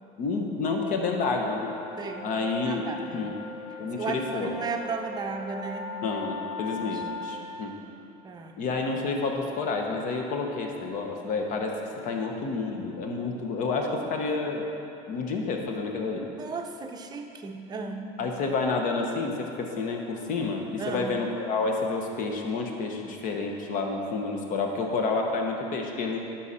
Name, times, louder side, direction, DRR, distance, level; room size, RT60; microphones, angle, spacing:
voice 1, 0.2-1.7 2.2-3.3 3.8-4.5 6.0-7.7 8.6-14.6 15.1-16.2 18.2-26.2, left 3 dB, 50° left, 2 dB, 1.2 m, -29 dB
sound 1, 1.8-7.4, left 3 dB, 75° left, 1.3 m, -39 dB
voice 2, 2.0-2.3 2.6-3.3 4.0-6.0 6.8-7.4 8.2-8.6 16.2-18.1 20.8-21.1, right 4 dB, 20° right, 4 dB, 0.7 m, -35 dB
11.5 x 5.8 x 4.3 m, 2.9 s
cardioid pair, 140°, 18 cm